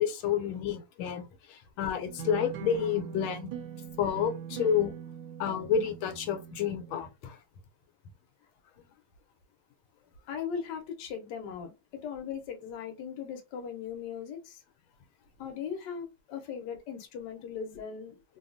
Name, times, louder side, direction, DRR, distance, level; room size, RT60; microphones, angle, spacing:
voice 1, 0.0-3.5 4.0-4.9 5.4-7.4, left 8 dB, 85° left, 1.4 m, -30 dB
sound 1, 2.0-7.1, right 8 dB, 75° right, 1.2 m, -42 dB
voice 2, 10.3-14.6 15.4-18.2, left 7 dB, 65° left, 1.2 m, -38 dB
3.2 x 2.3 x 2.4 m
omnidirectional pair, 2.2 m